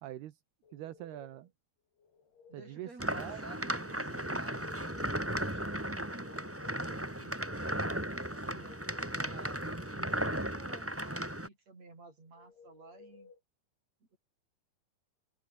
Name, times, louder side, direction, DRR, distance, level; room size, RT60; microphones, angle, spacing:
voice 1, 0.0-0.4 0.7-1.5 2.5-3.4, right 13 dB, 80° right, 3.4 m, -44 dB
sound 1, 0.6-1.5 2.0-2.8 4.4-5.4 5.8-6.9 8.3-9.3 9.8-10.8 12.4-13.4, left 5 dB, 80° left, 7.7 m, -59 dB
voice 2, 2.5-6.1 6.3-6.5 6.9-8.7 9.1-13.3 14.1-14.2, right 3 dB, 40° right, 9.0 m, -54 dB
sound 2, 3.0-11.5, right 1 dB, 5° right, 2.1 m, -36 dB
open air
omnidirectional pair, 4.6 m